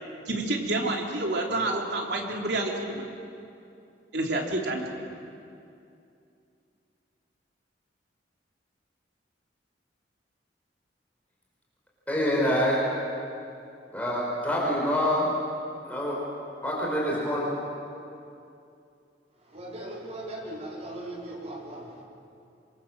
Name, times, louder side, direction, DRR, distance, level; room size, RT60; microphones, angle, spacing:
voice 1, 0.3-3.1 4.1-4.8, right 2 dB, 65° right, 0 dB, 3.5 m, -28 dB
voice 2, 12.1-12.8 13.9-15.3 15.8-16.2 16.6-17.5, equal, 10° left, -5 dB, 5.4 m, -26 dB
voice 3, 19.3-22.0, right 1 dB, 35° right, -2 dB, 4.6 m, -39 dB
25.5 x 23.5 x 7.7 m, 2.6 s
head